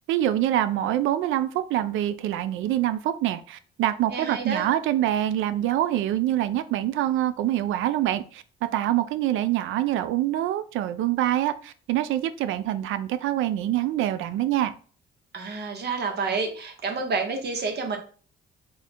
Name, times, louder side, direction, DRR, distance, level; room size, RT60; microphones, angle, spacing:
voice 1, 0.1-8.4 8.7-14.7, right 12 dB, 85° right, 12 dB, 0.4 m, -25 dB
voice 2, 4.1-4.7 15.3-18.0, right 4 dB, 55° right, 4 dB, 1.1 m, -29 dB
3.7 x 2.2 x 4.2 m, 0.41 s
cardioid pair, 90°, 20 cm